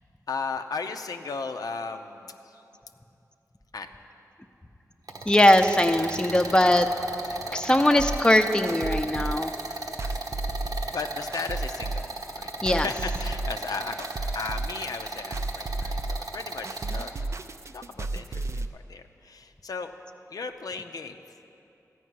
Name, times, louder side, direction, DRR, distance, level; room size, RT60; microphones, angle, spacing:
voice 1, 0.3-2.6 3.7-3.9 7.2-7.6 10.0-10.2 10.9-12.1 12.3-17.1 17.7-19.9 20.3-21.2, left 4 dB, 90° left, 6 dB, 0.6 m, -36 dB
sound 1, 5.1-17.1, right 2 dB, 85° right, 1.0 m, -36 dB
voice 2, 5.3-6.9 7.5-9.5 12.6-12.9, left 1 dB, 15° left, 6 dB, 0.6 m, -20 dB
sound 2, 8.0-18.7, right 2 dB, 50° right, 0.4 m, -33 dB
14.0 x 5.5 x 9.4 m, 2.8 s
wide cardioid pair, 95°, 6 cm